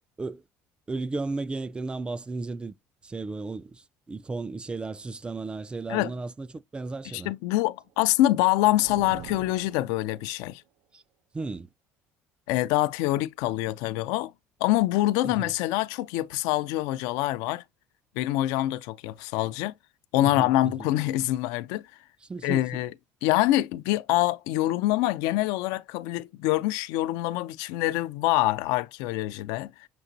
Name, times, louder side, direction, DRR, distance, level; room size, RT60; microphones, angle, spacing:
voice 1, 0.9-2.8 3.0-7.3 10.9-11.0 11.3-11.7 15.2-15.5 20.2-20.9 22.2-22.9, right 3 dB, 15° right, 0.3 m, -34 dB
voice 2, 7.1-10.6 12.5-14.3 14.6-17.6 18.2-19.7 20.1-21.8 22.4-22.9 23.2-29.9, left 16 dB, 85° left, 0.4 m, -25 dB
sound 1, 7.7-10.6, right 9 dB, 70° right, 0.6 m, -46 dB
6.9 x 2.9 x 2.6 m
cardioid pair, 105°, 6 cm